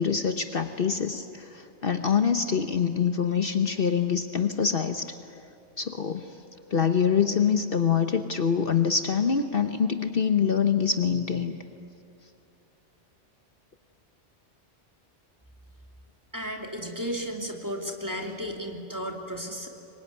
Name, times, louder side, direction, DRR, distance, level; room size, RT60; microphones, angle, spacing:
voice 1, 0.0-5.1 5.8-6.4 6.7-11.6, left 7 dB, 55° left, 7 dB, 1.1 m, -25 dB
voice 2, 16.3-19.7, equal, 15° right, 1 dB, 2.8 m, -34 dB
25.5 x 22.5 x 9.7 m, 2.7 s
omnidirectional pair, 1.2 m